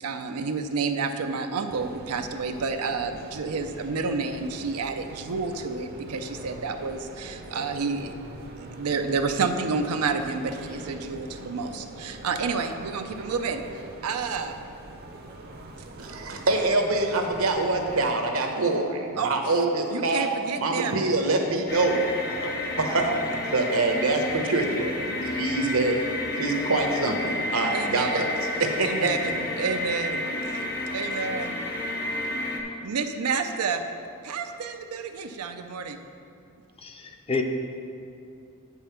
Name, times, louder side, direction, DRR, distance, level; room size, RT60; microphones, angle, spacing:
voice 1, 0.0-8.1 8.6-14.6 19.2-19.3 19.9-21.1 27.7-28.3 28.8-30.3 30.9-31.6 32.8-33.9 34.2-36.0, right 4 dB, 85° right, 6 dB, 0.5 m, -30 dB
sound 1, 1.7-18.1, right 2 dB, 45° right, 0.7 m, -43 dB
voice 2, 16.0-20.3 20.6-22.0 22.4-22.5 22.8-23.1 23.5-26.0 26.4-28.3 28.6-29.1, right 2 dB, 65° right, 3 dB, 0.9 m, -25 dB
sound 2, 21.7-32.6, left 2 dB, 45° left, 0.9 m, -31 dB
voice 3, 36.8-37.4, left 4 dB, 25° left, 4 dB, 0.6 m, -29 dB
8.2 x 5.5 x 5.7 m, 2.6 s
head